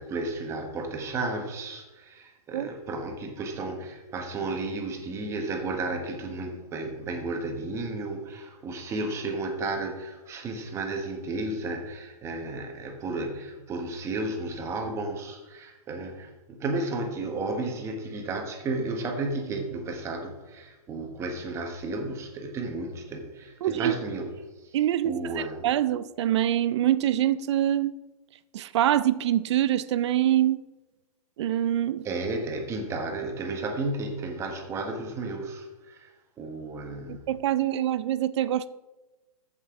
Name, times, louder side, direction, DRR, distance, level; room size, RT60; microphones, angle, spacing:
voice 1, 0.0-24.3 24.6-24.8 25.0-25.7 32.0-36.1 36.4-37.3, right 2 dB, 15° right, 1.2 m, -33 dB
voice 2, 23.6-23.9 24.7-25.2 25.6-27.9 28.5-30.6 31.4-32.0 37.1-38.7, right 12 dB, 50° right, 0.5 m, -24 dB
14.5 x 5.6 x 3.7 m
hypercardioid pair, 155°, 19 cm